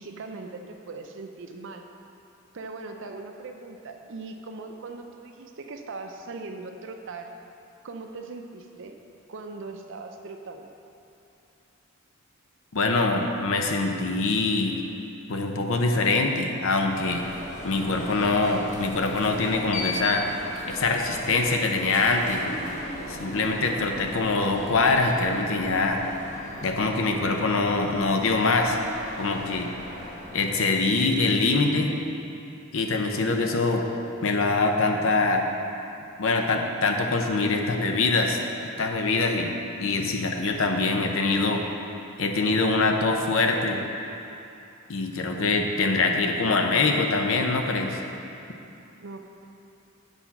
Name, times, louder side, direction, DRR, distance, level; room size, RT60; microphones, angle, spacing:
voice 1, 0.0-1.9 2.5-7.3 7.8-9.0 9.3-10.7 49.0-49.2, right 3 dB, 60° right, 5 dB, 0.6 m, -39 dB
voice 2, 12.7-14.8 15.3-17.3 17.6-20.3 20.7-22.5 23.1-26.0 26.6-28.8 29.2-29.7 30.3-31.9 32.7-33.9 34.2-35.5 36.2-38.4 38.8-39.5 39.8-41.6 42.2-43.8 44.9-48.0, left 3 dB, 65° left, 3 dB, 0.7 m, -24 dB
Alarm, 16.8-30.7, left 1 dB, 35° left, 0.9 m, -38 dB
8.1 x 4.2 x 5.9 m, 2.8 s
head